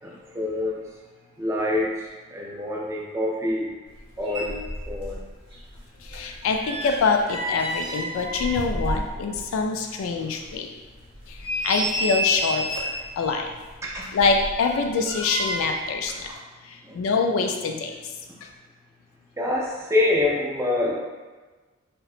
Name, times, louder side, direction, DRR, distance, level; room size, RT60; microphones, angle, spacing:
voice 1, 0.0-0.8 1.4-3.7 4.2-4.6 4.9-5.2 8.8-9.0 13.8-14.0 16.8-17.0 19.4-20.9, left 2 dB, 15° right, -3 dB, 0.3 m, -26 dB
sound 1, 4.0-4.1 4.3-5.2 5.5-9.5 9.8-9.9 10.5-10.6 11.1-13.1 13.9-15.9 16.2-16.4, equal, 55° right, 0.7 m, -30 dB
voice 2, 6.0-10.7 11.3-13.5 14.1-16.3 16.6-17.9, left 4 dB, 90° left, 5 dB, 0.3 m, -25 dB
2.8 x 2.1 x 2.4 m, 1.3 s
head